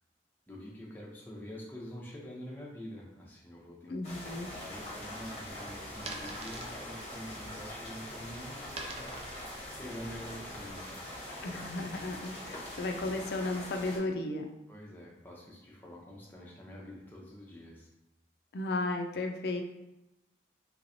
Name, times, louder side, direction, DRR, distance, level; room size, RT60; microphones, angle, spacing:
voice 1, 0.5-3.9 4.5-9.2 9.8-11.1 11.4-11.6 14.7-17.9, equal, 10° left, -4 dB, 0.7 m, -46 dB
voice 2, 3.9-4.5 11.4-14.4 18.5-19.6, left 2 dB, 65° left, 3 dB, 0.4 m, -34 dB
sound 1, 4.0-14.0, left 1 dB, 35° left, 0.9 m, -43 dB
sound 2, 6.0-10.7, right 2 dB, 35° right, 0.4 m, -47 dB
3.3 x 3.0 x 2.6 m, 0.91 s
head